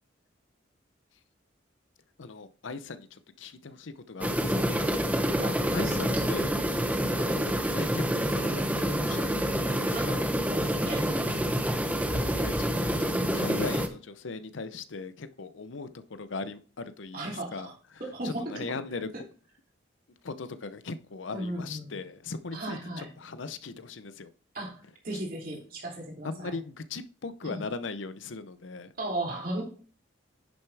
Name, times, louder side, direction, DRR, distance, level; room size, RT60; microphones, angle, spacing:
voice 1, 2.2-3.1 3.4-4.9 5.7-6.5 7.2-7.4 7.6-10.2 12.1-13.0 13.3-17.2 17.5-17.7 18.2-19.1 20.2-24.3 26.2-28.9, left 3 dB, 75° left, 12 dB, 0.7 m, -38 dB
sound 1, 4.2-13.9, equal, 5° right, 0.7 m, -27 dB
voice 2, 4.5-4.9 5.4-6.3 7.0-7.2 9.9-10.1 10.5-11.5 13.1-13.4 17.1-18.8 21.3-22.0 22.5-23.1 24.5-26.6 27.4-27.7 29.0-29.6, right 1 dB, 45° right, -2 dB, 3.1 m, -36 dB
10.5 x 6.6 x 3.4 m, 0.41 s
head